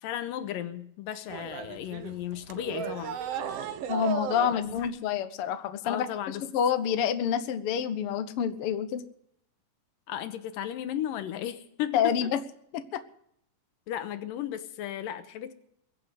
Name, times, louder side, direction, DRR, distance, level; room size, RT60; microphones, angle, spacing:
voice 1, 0.0-3.2 4.0-4.2 4.5-4.9 5.8-6.4 10.1-12.0 13.9-15.5, left 11 dB, 85° left, 11 dB, 2.7 m, -35 dB
sound 1, 1.3-4.9, right 8 dB, 65° right, 1.6 m, -35 dB
voice 2, 3.9-6.1 6.4-9.0 11.9-12.4 12.7-13.0, left 8 dB, 65° left, 9 dB, 1.4 m, -28 dB
22.0 x 7.8 x 8.3 m, 0.71 s
omnidirectional pair, 3.9 m